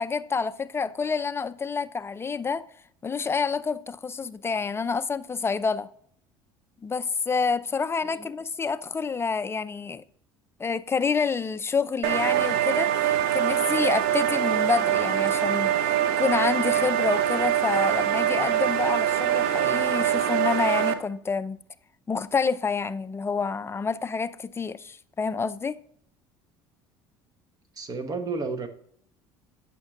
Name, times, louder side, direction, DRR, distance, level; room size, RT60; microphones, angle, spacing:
voice 1, 0.0-2.6 3.0-5.9 6.8-10.0 10.6-15.8 16.2-21.6 22.1-25.8, left 5 dB, 20° left, 0.5 m, -28 dB
sound 1, 12.0-20.9, right 11 dB, 80° right, 0.8 m, -24 dB
voice 2, 27.8-28.7, right 4 dB, 35° right, 1.1 m, -32 dB
8.8 x 6.1 x 3.7 m
supercardioid pair, 85°, 11 cm